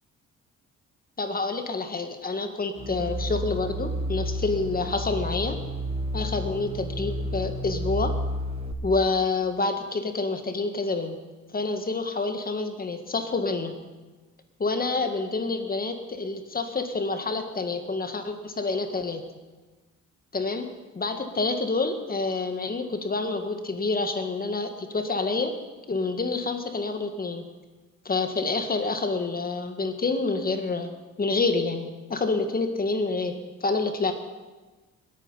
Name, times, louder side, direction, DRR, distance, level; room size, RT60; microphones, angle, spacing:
voice 1, 1.2-5.6 6.1-8.1 8.8-11.2 11.5-13.7 14.6-19.2 20.3-20.7 20.9-25.5 25.9-27.5 28.0-34.1, left 3 dB, 30° left, 6 dB, 1.6 m, -28 dB
sound 1, 2.8-8.7, equal, 20° right, 1.2 m, -31 dB
20.5 x 9.0 x 5.5 m, 1.2 s
cardioid pair, 90°, 30 cm